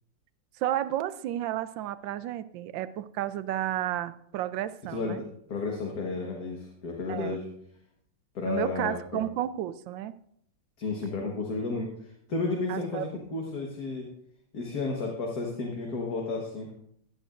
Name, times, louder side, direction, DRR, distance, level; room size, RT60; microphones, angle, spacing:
voice 1, 0.6-5.2 7.1-7.4 8.5-10.1 12.7-13.1, right 12 dB, 85° right, 14 dB, 1.3 m, -32 dB
voice 2, 4.9-7.5 8.4-9.2 10.8-14.1 14.5-16.7, left 3 dB, 55° left, -1 dB, 1.9 m, -32 dB
16.5 x 10.0 x 2.5 m, 0.70 s
omnidirectional pair, 2.0 m